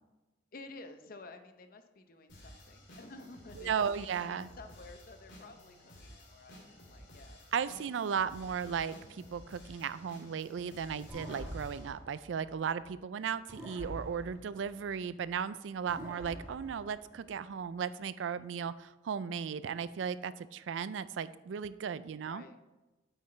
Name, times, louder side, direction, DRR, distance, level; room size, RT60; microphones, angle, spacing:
voice 1, 0.5-7.8 22.2-22.6, left 3 dB, 50° left, 8 dB, 0.7 m, -52 dB
sound 1, 2.3-11.9, equal, 85° left, 2.5 m, -53 dB
voice 2, 3.6-4.5 7.5-22.4, right 7 dB, 85° right, 15 dB, 0.4 m, -36 dB
sound 2, 11.1-13.0 13.5-15.4 15.9-17.6, equal, 15° right, 2.1 m, -47 dB
8.5 x 8.0 x 3.2 m, 1.1 s
head